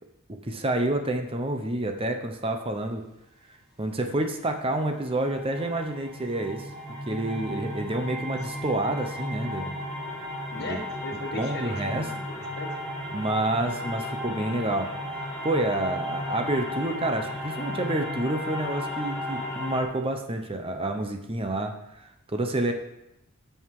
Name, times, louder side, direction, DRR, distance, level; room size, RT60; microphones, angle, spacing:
voice 1, 0.4-3.0 3.8-9.7 10.6-10.8 11.3-12.0 13.1-14.9 15.4-22.7, right 1 dB, 25° right, 5 dB, 0.8 m, -29 dB
sound 1, 4.5-19.8, left 1 dB, ahead, 3.1 m, -34 dB
voice 2, 10.5-12.7, left 2 dB, 50° left, 3 dB, 1.5 m, -37 dB
13.5 x 5.7 x 4.9 m, 0.87 s
head